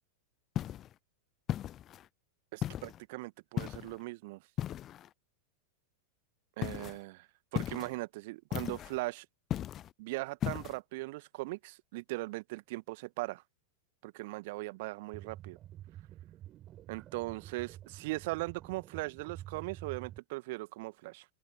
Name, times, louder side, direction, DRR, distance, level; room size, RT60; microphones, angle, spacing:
sound 1, 0.5-0.9 1.5-2.1 2.6-3.0 3.6-4.0 4.6-5.1 6.6-7.0 7.5-8.0 8.5-9.0 9.5-9.9 10.4-10.8, left 11 dB, 30° left, 0.4 m, -36 dB
voice 1, 2.5-4.4 6.6-7.3 7.5-9.2 10.0-13.4 14.0-15.6 16.9-21.2, right 22 dB, 50° right, 1.6 m, -39 dB
sound 2, 15.1-20.2, right 13 dB, 30° right, 5.4 m, -49 dB
open air
figure-of-eight pair, 90°, 0 cm